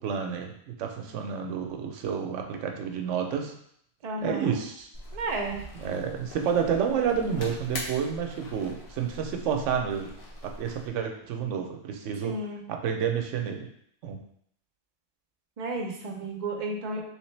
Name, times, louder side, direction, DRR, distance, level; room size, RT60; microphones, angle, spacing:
voice 1, 0.0-3.6 4.2-4.9 5.8-10.1 10.4-12.4 12.7-13.7 14.0-14.2, right 7 dB, 85° right, 4 dB, 0.9 m, -30 dB
voice 2, 4.0-4.6 5.1-5.6 12.2-12.7 15.6-17.0, right 2 dB, 45° right, 1 dB, 0.6 m, -32 dB
sound 1, 4.9-10.9, left 1 dB, 60° left, 1.0 m, -42 dB
3.3 x 3.2 x 3.2 m, 0.67 s
omnidirectional pair, 1.2 m